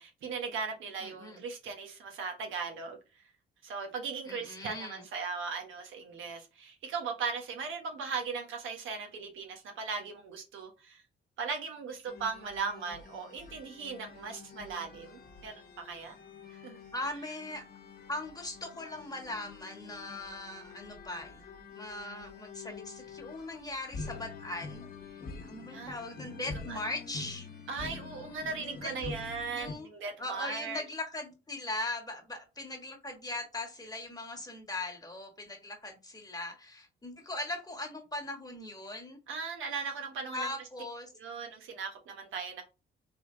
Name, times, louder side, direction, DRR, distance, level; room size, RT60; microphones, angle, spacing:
voice 1, 0.0-3.0 3.6-11.0 11.4-16.1 16.6-16.8 25.7-25.9 26.3-26.8 27.7-30.8 39.3-40.5 41.1-42.6, right 5 dB, 80° right, 1.2 m, -38 dB
voice 2, 1.0-1.4 4.2-5.0 16.9-17.6 18.1-21.4 21.7-25.2 25.5-27.5 28.6-29.1 29.5-29.9 30.2-39.2 40.3-41.1, left 2 dB, 20° left, 1.5 m, -40 dB
sound 1, 12.1-29.7, left 4 dB, 50° left, 1.2 m, -46 dB
3.8 x 3.3 x 3.7 m
cardioid pair, 90°, 20 cm